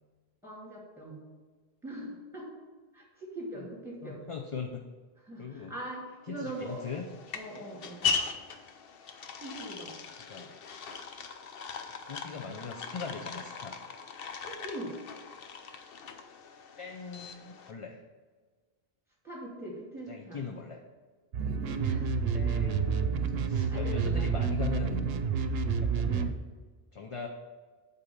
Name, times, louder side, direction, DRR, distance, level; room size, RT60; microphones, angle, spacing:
voice 1, 0.4-1.2 1.8-2.5 2.9-4.2 5.2-6.8 7.3-8.1 9.4-9.9 14.3-15.0 19.2-20.4 21.6-22.6 23.5-24.3, right 1 dB, ahead, -4 dB, 2.6 m, -42 dB
voice 2, 4.0-4.8 5.4-5.7 6.3-7.0 8.1-8.3 10.3-10.5 12.1-13.8 16.8-18.0 20.1-20.8 22.3-25.1 25.8-26.4 26.9-27.3, left 5 dB, 35° left, 2 dB, 0.6 m, -40 dB
sound 1, 6.5-17.7, left 5 dB, 65° left, 0.9 m, -39 dB
sound 2, 21.3-26.3, right 6 dB, 80° right, 0.8 m, -29 dB
8.5 x 4.2 x 7.0 m, 1.4 s
omnidirectional pair, 1.0 m